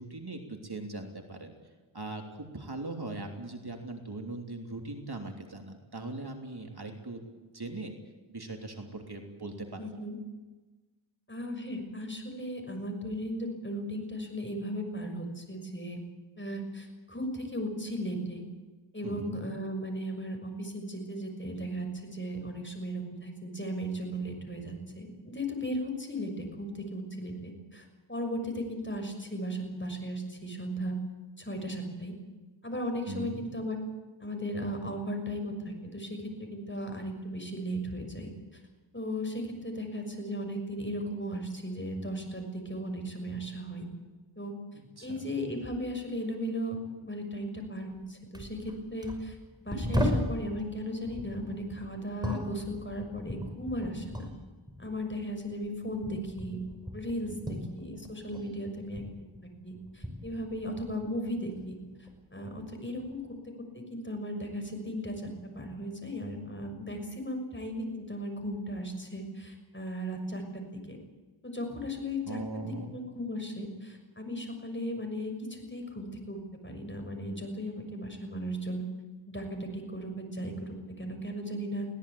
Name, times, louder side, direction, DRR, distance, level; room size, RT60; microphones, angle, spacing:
voice 1, 0.0-1.5 1.9-8.0 8.3-9.9 19.0-19.4 33.1-33.6 45.0-45.4 57.3-57.6 72.2-73.0, right 2 dB, 55° right, 3 dB, 3.1 m, -40 dB
voice 2, 9.8-10.2 11.3-16.0 16.4-18.4 18.9-31.0 31.4-32.1 32.6-33.8 34.2-38.6 38.9-43.8 44.4-44.5 45.0-49.4 49.6-54.3 54.8-56.6 56.9-59.0 59.6-61.8 62.3-63.2 63.7-65.3 65.5-71.0 71.4-78.8 79.3-81.9, equal, 25° left, 4 dB, 6.3 m, -36 dB
sound 1, 47.9-48.0 48.3-50.4 51.0-54.4 54.7-58.5 58.8-61.1 61.5-62.3 63.0-63.2, equal, 10° right, 5.8 m, -37 dB
22.0 x 17.5 x 8.5 m, 1.2 s
wide cardioid pair, 50°, 47 cm